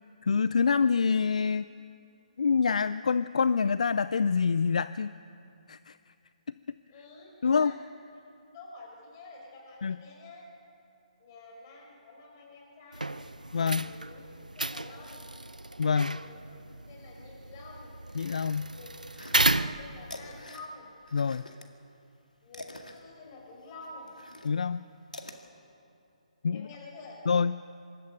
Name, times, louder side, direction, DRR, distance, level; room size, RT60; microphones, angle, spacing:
voice 1, 0.2-1.7 2.4-5.1 5.7-6.0 7.4-7.7 9.8-10.0 13.5-13.9 15.8-16.1 18.2-18.7 21.1-21.4 24.4-24.8 26.4-26.7 27.3-27.6, left 5 dB, 60° left, 15 dB, 0.4 m, -26 dB
voice 2, 6.9-7.8 8.1-8.2 8.5-10.5 11.2-13.2 13.8-15.3 16.0-16.6 16.9-17.9 18.7-20.9 22.4-24.1 26.4-27.2, left 3 dB, 30° left, -1 dB, 5.6 m, -49 dB
sound 1, 12.9-20.4, right 2 dB, 90° right, 0.6 m, -33 dB
sound 2, 19.1-19.7 20.0-21.7 22.0-25.4, left 1 dB, 85° left, 2.0 m, -46 dB
24.5 x 13.0 x 8.4 m, 2.8 s
figure-of-eight pair, 140°, 4 cm